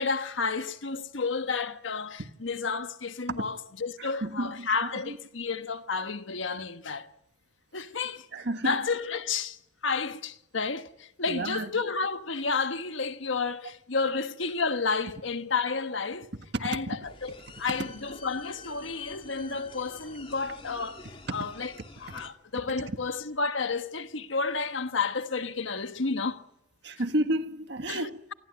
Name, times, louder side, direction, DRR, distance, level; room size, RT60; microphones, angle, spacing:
voice 1, 0.0-7.1 7.7-8.3 8.6-9.6 9.8-16.3 16.6-21.0 21.3-21.7 22.0-26.4 27.9-28.3, left 4 dB, 85° left, 1.4 m, -31 dB
voice 2, 4.0-4.7 5.0-5.2 8.3-8.8 11.3-11.7 16.9-17.0 26.8-28.1, right 1 dB, 60° right, 1.6 m, -30 dB
sound 1, 17.0-22.3, left 3 dB, 30° left, 2.6 m, -48 dB
27.5 x 20.0 x 8.4 m
head